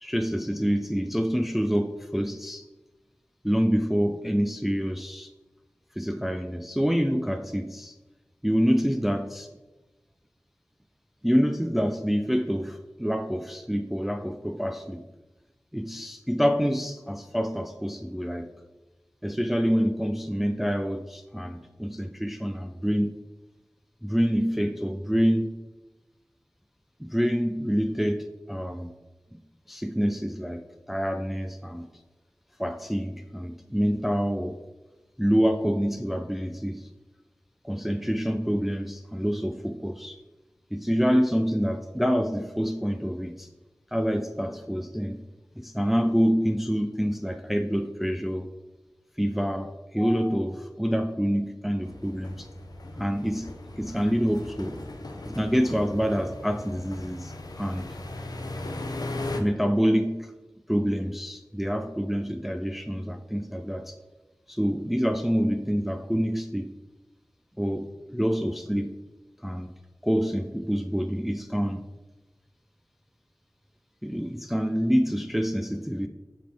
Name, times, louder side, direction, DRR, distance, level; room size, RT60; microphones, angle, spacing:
voice 1, 0.0-2.6 3.4-5.3 6.0-7.9 8.4-9.5 11.2-15.0 15.7-18.5 19.2-23.1 24.0-25.6 27.0-28.9 29.7-30.6 30.9-31.9 32.6-34.6 35.2-36.9 37.6-40.2 40.7-43.5 43.9-45.2 45.6-48.5 49.2-52.5 53.0-53.5 53.8-54.8 55.3-57.9 59.4-60.3 60.7-64.0 64.5-66.7 67.6-68.9 69.4-69.7 70.0-71.9 74.0-76.1, equal, 5° right, 7 dB, 0.3 m, -27 dB
sound 1, 51.8-59.4, left 2 dB, 85° left, 0.5 m, -37 dB
5.9 x 4.7 x 3.4 m, 1.1 s
wide cardioid pair, 45°, 7 cm